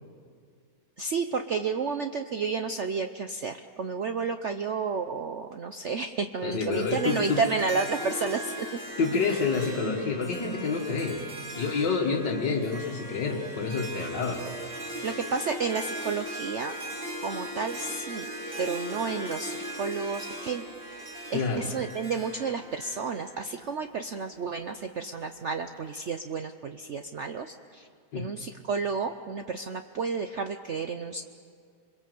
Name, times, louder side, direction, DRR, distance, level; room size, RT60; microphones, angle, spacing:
voice 1, 1.0-8.7 9.3-9.4 15.0-16.7 17.2-18.3 18.6-27.9 28.1-31.2, right 5 dB, 55° right, 7 dB, 0.9 m, -31 dB
voice 2, 6.4-7.4 9.0-11.2 11.6-14.4 21.3-21.7 28.1-28.3, left 4 dB, 85° left, -1 dB, 2.3 m, -28 dB
Harp, 6.7-24.0, right 1 dB, 30° right, 2.6 m, -39 dB
28.0 x 22.0 x 7.8 m, 2.2 s
omnidirectional pair, 1.9 m